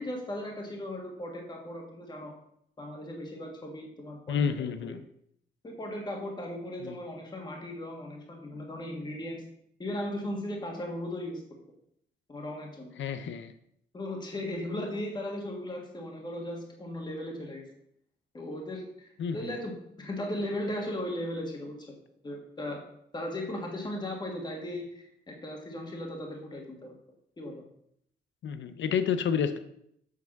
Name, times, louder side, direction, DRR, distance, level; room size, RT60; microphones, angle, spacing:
voice 1, 0.0-2.3 2.8-4.9 5.6-9.4 9.8-11.4 12.3-12.9 13.9-17.7 18.3-21.8 22.2-22.8 23.1-26.9 27.4-27.6, left 1 dB, 25° left, 1 dB, 1.6 m, -37 dB
voice 2, 4.3-5.0 6.8-7.0 13.0-13.5 19.2-19.5 28.4-29.6, left 7 dB, 90° left, 10 dB, 0.7 m, -30 dB
7.6 x 5.8 x 5.9 m, 0.72 s
wide cardioid pair, 160°, 19 cm